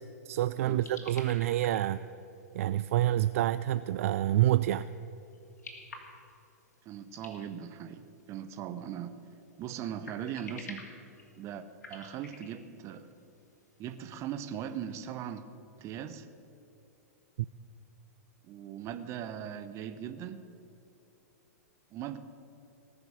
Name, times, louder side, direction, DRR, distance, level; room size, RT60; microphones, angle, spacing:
voice 1, 0.3-2.0 2.5-4.9, right 13 dB, 60° right, 14 dB, 0.3 m, -27 dB
sound 1, 0.6-15.1, left 3 dB, 80° left, 2.8 m, -53 dB
voice 2, 6.8-8.0 8.3-9.1 9.6-10.8 11.4-13.1 13.8-15.4 15.8-16.3 18.4-20.4 21.9-22.2, right 9 dB, 35° right, 11 dB, 1.0 m, -39 dB
18.5 x 7.0 x 8.7 m, 2.9 s
hypercardioid pair, 110°, 9 cm